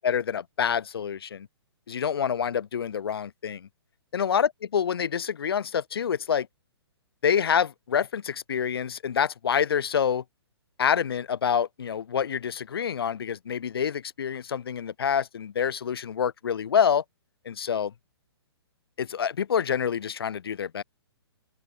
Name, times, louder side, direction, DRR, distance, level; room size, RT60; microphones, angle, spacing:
voice 1, 0.0-1.5 1.9-3.7 4.1-6.5 7.2-10.2 10.8-17.0 17.4-17.9 19.0-20.8, left 8 dB, 60° left, 2.8 m, -27 dB
open air
figure-of-eight pair, 125°, 14 cm